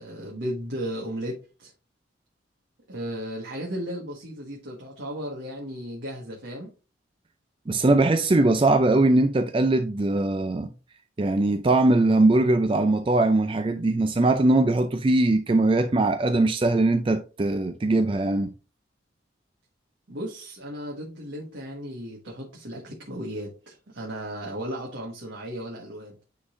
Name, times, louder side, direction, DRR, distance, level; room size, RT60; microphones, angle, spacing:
voice 1, 0.0-1.7 2.9-6.7 20.1-26.2, equal, 80° right, 1.5 m, -35 dB
voice 2, 7.7-10.7 11.2-18.5, right 2 dB, 30° right, 0.4 m, -21 dB
9.5 x 3.9 x 2.6 m
head